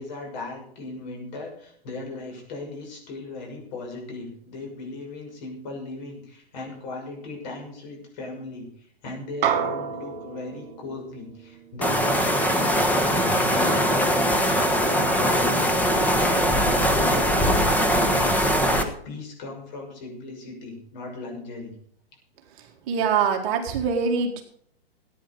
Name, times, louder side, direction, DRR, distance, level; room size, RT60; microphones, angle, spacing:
voice 1, 0.0-13.2 13.4-21.7, left 3 dB, 45° left, 1 dB, 6.2 m, -37 dB
slide gong, 9.4-14.1, right 8 dB, 55° right, 2.8 m, -32 dB
sound 1, 11.8-18.8, equal, 5° left, 1.2 m, -21 dB
voice 2, 22.9-24.4, right 6 dB, 35° right, 3 dB, 2.0 m, -23 dB
15.0 x 9.6 x 5.5 m, 0.64 s
hypercardioid pair, 145°, 31 cm